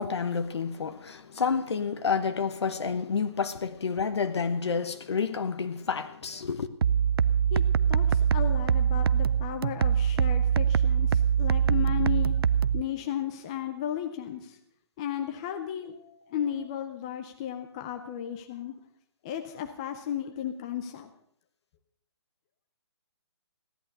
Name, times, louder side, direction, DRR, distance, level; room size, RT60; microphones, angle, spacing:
voice 1, 0.0-6.7, left 5 dB, 70° left, 1.1 m, -29 dB
sound 1, 6.8-12.8, right 8 dB, 60° right, 0.5 m, -23 dB
voice 2, 7.9-12.4 12.7-14.6 15.0-18.7 19.2-21.1, left 10 dB, 15° left, 0.5 m, -34 dB
16.5 x 11.5 x 6.6 m
hypercardioid pair, 175°, 14 cm